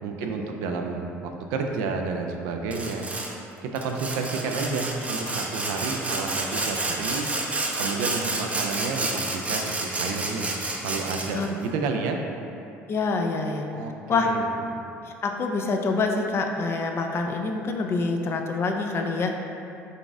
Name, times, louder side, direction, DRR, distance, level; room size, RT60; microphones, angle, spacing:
voice 1, 0.0-3.1 3.6-7.3 7.8-10.5 10.8-12.2 13.7-14.4 14.7-14.8, right 4 dB, 75° right, 3 dB, 0.3 m, -30 dB
Sawing, 2.7-3.3 3.8-11.5, right 2 dB, 20° right, 0.5 m, -30 dB
voice 2, 12.9-13.6 14.1-14.3 15.1-19.3, left 3 dB, 40° left, 3 dB, 0.4 m, -26 dB
4.0 x 2.4 x 3.4 m, 2.7 s
hypercardioid pair, 70°, 6 cm